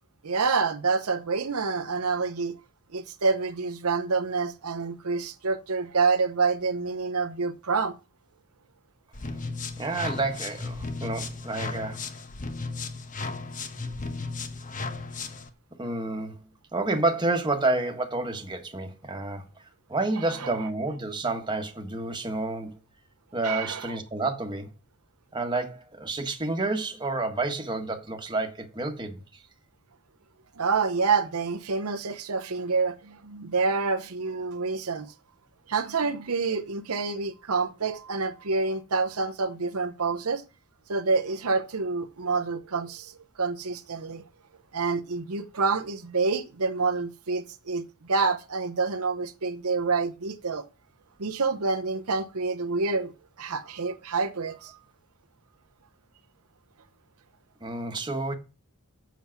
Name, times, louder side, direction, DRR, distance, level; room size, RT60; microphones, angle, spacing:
voice 1, 0.2-2.5 2.9-7.9 20.4-20.5 23.4-23.9 30.6-35.1 35.7-40.4 40.9-44.2 44.7-50.6 51.2-53.1 53.4-54.8, right 4 dB, 85° right, 0.9 m, -27 dB
sound 1, 9.1-15.5, left 3 dB, 35° left, 1.1 m, -35 dB
voice 2, 9.8-12.0 15.8-16.4 16.7-19.4 19.9-22.8 23.3-24.7 25.3-29.2 57.6-58.3, right 2 dB, 20° right, 1.4 m, -29 dB
7.5 x 7.2 x 5.9 m
head